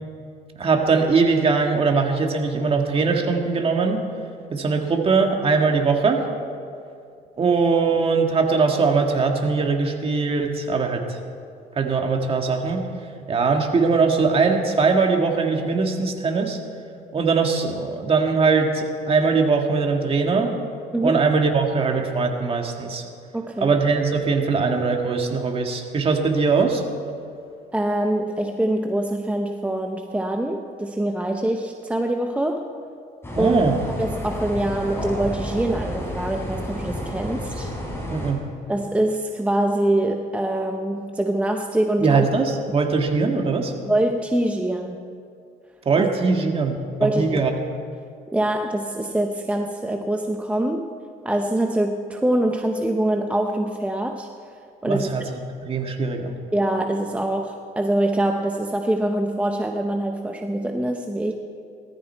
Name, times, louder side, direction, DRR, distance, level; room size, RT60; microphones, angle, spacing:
voice 1, 0.6-4.0 4.5-6.3 7.4-11.2 11.7-12.9 13.3-16.6 17.1-20.6 21.0-23.0 23.6-26.8 33.4-33.8 38.1-38.4 42.0-43.7 45.9-47.5 54.8-55.2 55.6-56.4, right 4 dB, 35° right, 3 dB, 1.9 m, -21 dB
voice 2, 20.9-21.2 23.3-23.7 27.7-32.7 33.4-33.6 34.0-37.7 38.7-42.3 43.9-45.0 46.0-46.1 47.0-47.5 48.3-50.9 51.2-54.3 54.8-55.1 56.5-61.3, right 1 dB, 10° right, 4 dB, 0.8 m, -24 dB
sound 1, 33.2-38.3, equal, 15° left, 4.3 m, -31 dB
18.0 x 14.0 x 4.6 m, 2.4 s
cardioid pair, 110°, 17 cm